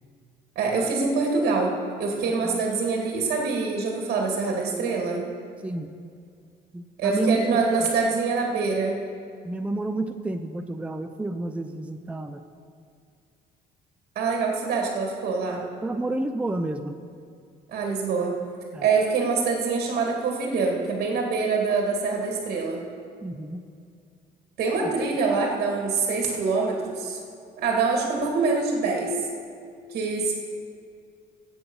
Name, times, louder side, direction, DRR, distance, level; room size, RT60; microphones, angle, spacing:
voice 1, 0.6-1.7 2.0-5.2 7.0-9.0 14.2-15.6 17.7-18.3 18.8-22.8 24.6-27.2 27.6-29.2 29.9-30.3, right 4 dB, 60° right, 0 dB, 2.2 m, -25 dB
voice 2, 6.7-7.9 9.4-12.4 15.8-17.0 18.7-18.9 23.2-23.6, right 2 dB, 5° right, 6 dB, 0.6 m, -30 dB
15.0 x 8.0 x 5.5 m, 2.3 s
cardioid pair, 110°, 17 cm